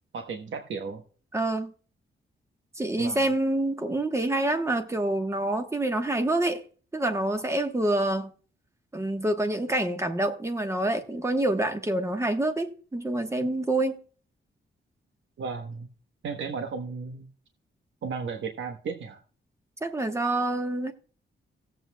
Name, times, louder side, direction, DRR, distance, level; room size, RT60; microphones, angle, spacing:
voice 1, 0.1-1.0 3.0-3.2 15.4-15.9 16.2-17.3 18.0-19.2, right 5 dB, 65° right, 1.1 m, -34 dB
voice 2, 1.3-1.7 2.8-6.6 6.9-8.3 8.9-14.0 19.8-20.9, right 1 dB, 15° right, 1.1 m, -27 dB
17.0 x 7.9 x 2.2 m
wide cardioid pair, 165°, 21 cm